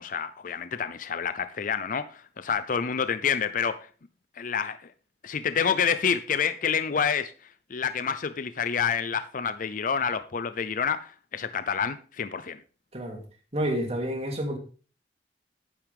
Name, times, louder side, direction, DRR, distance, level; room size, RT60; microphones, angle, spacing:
voice 1, 0.0-3.9 4.4-4.9 5.2-7.3 7.7-12.6, left 6 dB, 50° left, 0.5 m, -28 dB
voice 2, 12.9-13.2 13.5-14.6, equal, 35° right, 2.7 m, -29 dB
10.5 x 9.7 x 3.5 m
head